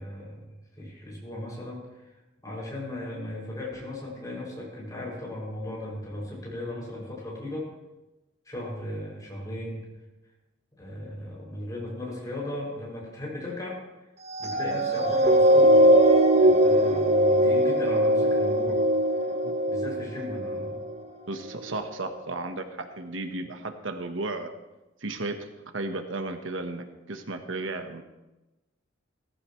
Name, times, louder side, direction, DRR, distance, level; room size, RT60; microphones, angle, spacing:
voice 1, 0.0-2.1 2.4-7.7 8.4-9.9 10.8-13.8 14.4-16.0 16.4-18.8 19.7-20.8, left 1 dB, 20° left, -4 dB, 6.2 m, -36 dB
sound 1, 14.3-21.0 21.6-21.8, right 1 dB, 35° right, 1.2 m, -21 dB
voice 2, 21.3-24.5 25.0-25.4 25.7-28.0, right 2 dB, 90° right, 6 dB, 1.2 m, -34 dB
17.5 x 15.0 x 3.2 m, 1.0 s
head